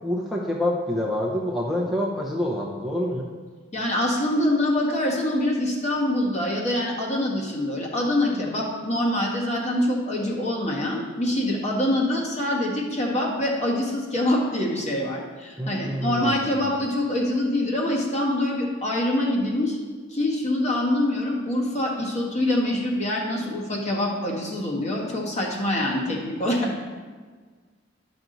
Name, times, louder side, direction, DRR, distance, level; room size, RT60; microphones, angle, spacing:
voice 1, 0.0-3.3 15.6-16.6, left 1 dB, ahead, -3 dB, 0.8 m, -27 dB
voice 2, 3.7-19.8 20.1-27.0, left 1 dB, 40° left, -3 dB, 1.7 m, -25 dB
10.5 x 6.0 x 4.0 m, 1.5 s
head